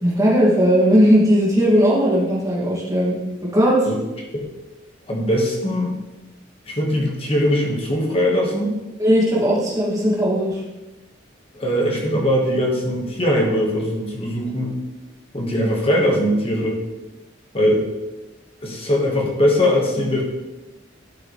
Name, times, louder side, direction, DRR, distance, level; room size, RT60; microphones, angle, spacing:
voice 1, 0.0-3.2 3.4-3.8 9.0-10.6, equal, 20° right, -6 dB, 2.3 m, -17 dB
voice 2, 5.1-6.0 6.7-8.8 11.5-14.8 15.3-16.8 17.5-17.8 18.6-20.2, equal, 30° left, -1 dB, 1.6 m, -20 dB
12.0 x 5.9 x 3.3 m, 1.1 s
head